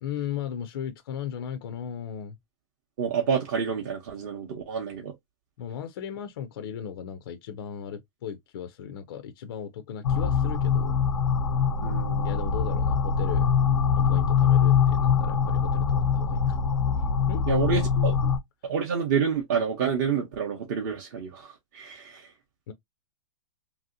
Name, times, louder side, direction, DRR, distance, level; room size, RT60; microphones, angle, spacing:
voice 1, 0.0-2.4 5.6-11.0 12.2-13.5 13.9-16.6 17.3-18.3 22.7-22.8, left 9 dB, 45° left, 0.4 m, -37 dB
voice 2, 3.0-5.1 11.8-12.3 17.5-18.1 18.6-22.3, right 7 dB, 35° right, 0.7 m, -28 dB
sound 1, 10.0-18.4, left 6 dB, 90° left, 0.6 m, -23 dB
2.9 x 2.7 x 2.5 m
hypercardioid pair, 165°, 17 cm